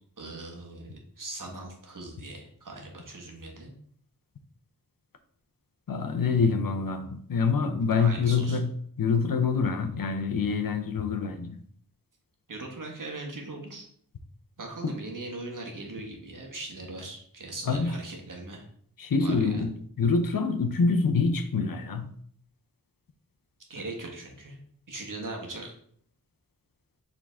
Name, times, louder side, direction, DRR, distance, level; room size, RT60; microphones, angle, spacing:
voice 1, 0.2-3.7 8.0-8.6 12.5-13.9 14.6-18.7 19.2-19.5 23.7-24.6 24.9-25.7, right 2 dB, 60° right, 1 dB, 1.5 m, -40 dB
voice 2, 5.9-8.7 9.0-11.6 14.8-15.0 17.7-18.0 19.0-22.1, left 4 dB, 70° left, 8 dB, 0.7 m, -26 dB
7.1 x 3.8 x 3.6 m, 0.62 s
wide cardioid pair, 80°, 35 cm